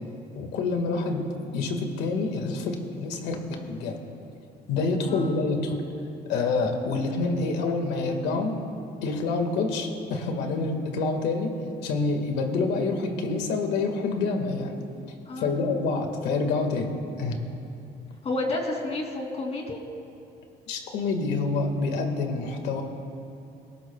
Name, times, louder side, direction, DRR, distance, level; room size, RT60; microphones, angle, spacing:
voice 1, 0.3-1.3 1.5-4.0 4.7-8.5 9.0-11.5 11.8-14.7 15.4-16.9 17.2-17.4 20.7-22.8, left 3 dB, 90° left, 4 dB, 1.8 m, -27 dB
voice 2, 5.1-5.4 15.3-15.8 18.2-19.8, left 2 dB, 40° left, 1 dB, 3.0 m, -31 dB
28.5 x 18.5 x 2.3 m, 2.7 s
cardioid pair, 110°, 17 cm